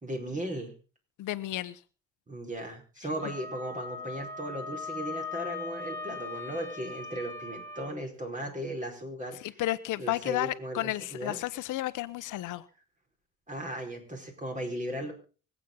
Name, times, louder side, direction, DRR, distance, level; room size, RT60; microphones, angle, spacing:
voice 1, 0.0-0.7 2.3-9.6 10.0-11.4 13.5-15.1, right 1 dB, 25° right, 4 dB, 4.9 m, -37 dB
voice 2, 1.2-1.8 9.4-12.6, left 15 dB, 90° left, 13 dB, 1.0 m, -32 dB
Wind instrument woodwind instrument, 3.2-7.9, left 4 dB, 10° left, 2.4 m, -39 dB
24.5 x 8.3 x 3.9 m, 0.37 s
cardioid pair, 90°, 30 cm